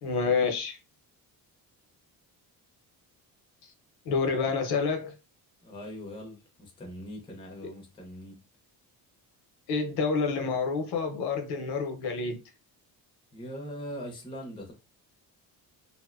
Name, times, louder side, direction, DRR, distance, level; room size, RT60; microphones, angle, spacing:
voice 1, 0.0-0.8 4.0-5.2 9.7-12.4, left 4 dB, 70° left, 0.7 m, -28 dB
voice 2, 5.6-8.4 13.3-14.7, equal, 15° left, 0.5 m, -41 dB
2.5 x 2.1 x 2.3 m
cardioid pair, 170°, 40 cm